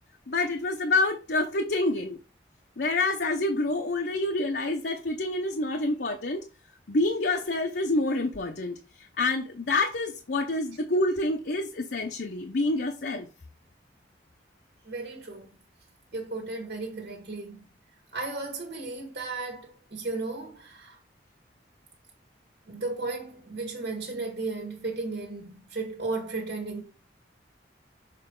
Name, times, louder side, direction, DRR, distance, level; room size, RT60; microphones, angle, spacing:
voice 1, 0.3-2.2 2.8-6.4 6.9-13.3, left 2 dB, 65° left, 0.7 m, -27 dB
voice 2, 14.8-15.6 16.1-17.6 18.1-21.0 22.7-26.8, right 3 dB, 70° right, 1.6 m, -35 dB
6.7 x 3.9 x 3.8 m
head